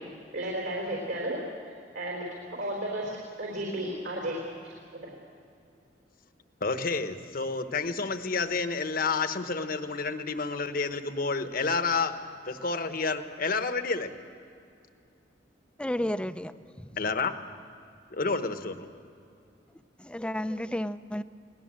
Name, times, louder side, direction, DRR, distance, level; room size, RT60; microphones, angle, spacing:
voice 1, 0.3-1.4 1.6-2.2 2.6-3.1 3.4-4.7 5.0-5.1, right 1 dB, 75° right, 3.9 m, -33 dB
voice 2, 6.6-12.2 12.5-14.1 16.9-17.3 18.1-18.9, left 4 dB, 55° left, 1.1 m, -29 dB
voice 3, 15.8-17.0 20.0-21.2, left 1 dB, 5° left, 0.5 m, -32 dB
23.0 x 17.5 x 7.6 m
head